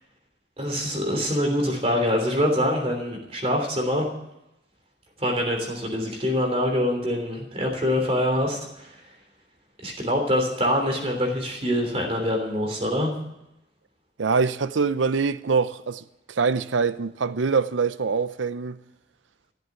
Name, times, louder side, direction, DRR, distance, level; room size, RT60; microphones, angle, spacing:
voice 1, 0.6-4.1 5.2-9.0 9.8-13.1, equal, 30° right, 3.2 m, -25 dB
voice 2, 14.2-18.8, right 5 dB, 85° right, 0.6 m, -24 dB
14.5 x 8.1 x 9.6 m
head